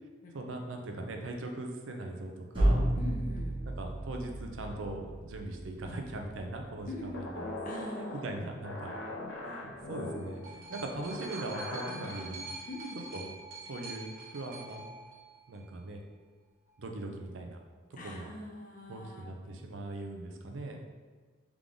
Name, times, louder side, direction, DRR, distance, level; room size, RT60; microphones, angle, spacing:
voice 1, 0.3-2.8 3.7-7.5 7.9-8.9 9.4-12.6 13.1-13.3 13.7-14.9 15.5-16.0 16.8-17.6 18.0-18.3 18.9-20.8, right 2 dB, 85° right, 3 dB, 0.6 m, -40 dB
sound 1, 2.5-6.4, right 1 dB, 25° right, 1.1 m, -32 dB
voice 2, 2.9-3.6 6.9-8.2 12.7-13.1 18.0-19.3, left 1 dB, 45° left, -3 dB, 0.7 m, -43 dB
sound 2, 7.1-12.3, left 1 dB, 85° left, 0.9 m, -41 dB
sound 3, 9.9-15.8 16.7-16.8, right 3 dB, 50° right, 1.1 m, -46 dB
3.7 x 3.6 x 3.6 m, 1.4 s
head